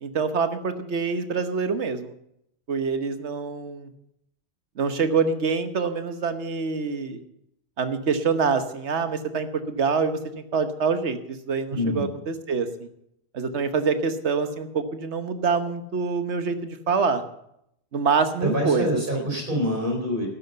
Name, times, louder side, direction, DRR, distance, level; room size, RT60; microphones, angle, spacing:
voice 1, 0.0-2.1 2.7-3.9 4.8-7.2 7.8-12.9 13.3-17.2 17.9-19.0, right 5 dB, 85° right, 9 dB, 1.4 m, -25 dB
voice 2, 11.7-12.1 18.4-20.3, equal, 50° right, 2 dB, 4.4 m, -26 dB
13.0 x 10.0 x 6.8 m, 0.77 s
omnidirectional pair, 1.1 m